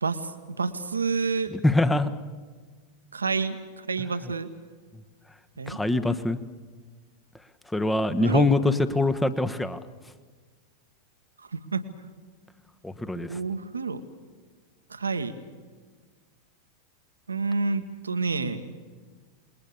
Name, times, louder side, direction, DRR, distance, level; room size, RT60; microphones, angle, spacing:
voice 1, 0.0-1.5 3.1-3.6 3.9-4.5 5.6-5.8 8.1-8.5 11.5-11.8 13.2-14.0 14.9-15.4 17.3-18.6, right 4 dB, 85° right, 9 dB, 1.5 m, -29 dB
voice 2, 1.5-2.1 4.2-4.3 5.7-6.4 7.7-9.8 12.8-13.4, left 2 dB, 5° left, 12 dB, 1.4 m, -24 dB
27.5 x 21.0 x 7.0 m, 1.5 s
figure-of-eight pair, 90°, 0 cm